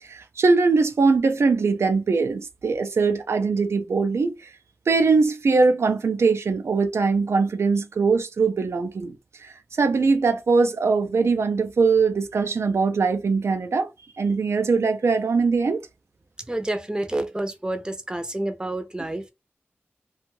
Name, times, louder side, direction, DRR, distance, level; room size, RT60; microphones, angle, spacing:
voice 1, 0.0-4.5 4.9-9.1 9.4-13.9 14.2-15.8, right 4 dB, 80° right, 0.4 m, -21 dB
voice 2, 16.5-19.3, right 1 dB, 15° right, 0.6 m, -29 dB
2.5 x 2.3 x 3.0 m
wide cardioid pair, 75°, 5 cm